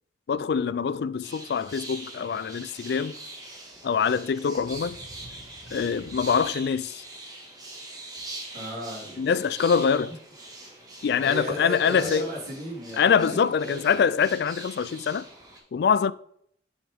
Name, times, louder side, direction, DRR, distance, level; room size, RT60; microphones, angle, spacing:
voice 1, 0.3-3.2 3.8-5.0 5.7-7.0 9.2-10.2 11.0-12.3 13.0-15.3 15.7-16.1, left 6 dB, 55° left, 0.3 m, -24 dB
sound 1, 1.2-15.6, right 2 dB, 20° right, 1.5 m, -42 dB
voice 2, 8.5-9.3 11.2-13.3 13.6-13.8, equal, 55° right, 3.5 m, -35 dB
8.5 x 7.0 x 3.4 m
head